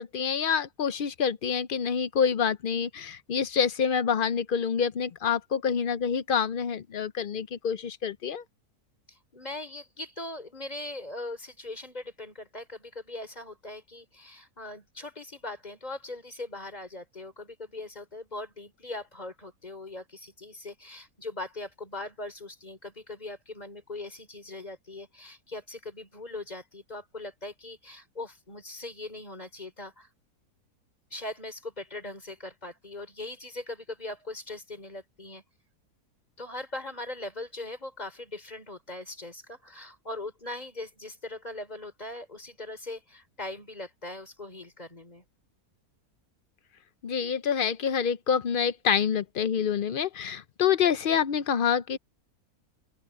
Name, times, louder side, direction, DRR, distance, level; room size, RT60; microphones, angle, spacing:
voice 1, 0.0-8.4 47.0-52.0, left 7 dB, 70° left, 0.5 m, -27 dB
voice 2, 9.1-30.1 31.1-35.4 36.4-45.2 50.2-50.4, left 2 dB, 25° left, 3.7 m, -40 dB
open air
omnidirectional pair, 1.7 m